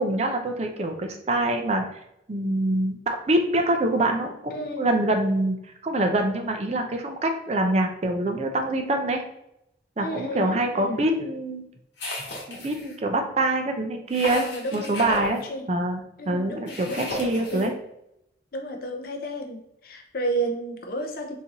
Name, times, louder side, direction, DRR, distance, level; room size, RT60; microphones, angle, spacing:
voice 1, 0.0-1.9 2.3-5.6 5.8-9.2 10.0-11.6 12.5-14.4 14.7-15.4 15.7-16.0 16.3-17.7, right 1 dB, 35° right, 4 dB, 0.4 m, -25 dB
voice 2, 4.5-5.0 10.0-11.0 14.3-15.2 15.5-15.7 16.2-17.1 17.5-17.7 18.5-21.4, right 1 dB, 55° left, 3 dB, 0.5 m, -32 dB
sound 1, 12.0-12.9 14.1-15.4 16.7-17.7, left 2 dB, 80° left, 1.2 m, -34 dB
3.9 x 2.6 x 2.9 m, 0.80 s
head